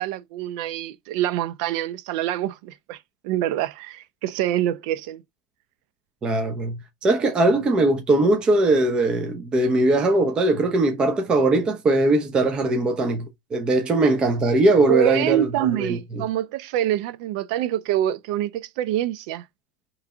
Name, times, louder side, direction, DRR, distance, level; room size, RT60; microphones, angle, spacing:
voice 1, 0.0-3.0 3.2-5.2 14.9-19.4, right 12 dB, 65° right, 0.6 m, -25 dB
voice 2, 6.2-16.3, right 2 dB, 25° right, 0.8 m, -20 dB
3.4 x 3.2 x 4.9 m
supercardioid pair, 135°, 4 cm